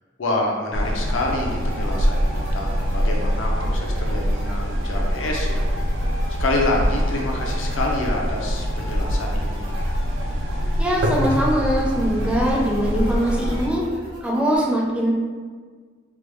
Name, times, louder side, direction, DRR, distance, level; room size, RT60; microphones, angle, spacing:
voice 1, 0.2-5.7 6.4-9.7, left 2 dB, 75° left, 0 dB, 0.6 m, -27 dB
sound 1, 0.7-13.7, equal, 80° right, 0.4 m, -24 dB
sound 2, 0.8-14.6, right 1 dB, 55° right, 0.9 m, -44 dB
voice 2, 10.8-13.8 14.2-15.1, equal, 5° right, -3 dB, 0.5 m, -22 dB
3.3 x 2.2 x 3.1 m, 1.5 s
head